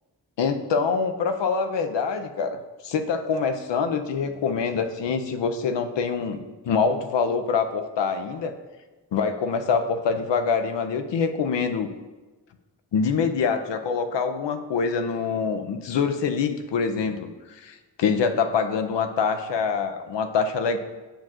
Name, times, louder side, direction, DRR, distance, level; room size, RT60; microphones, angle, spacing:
voice 1, 0.4-2.6 2.8-8.5 9.1-11.9 12.9-17.3 17.6-20.8, left 5 dB, 80° left, 7 dB, 0.7 m, -25 dB
10.0 x 7.4 x 2.5 m, 1.2 s
wide cardioid pair, 155°, 42 cm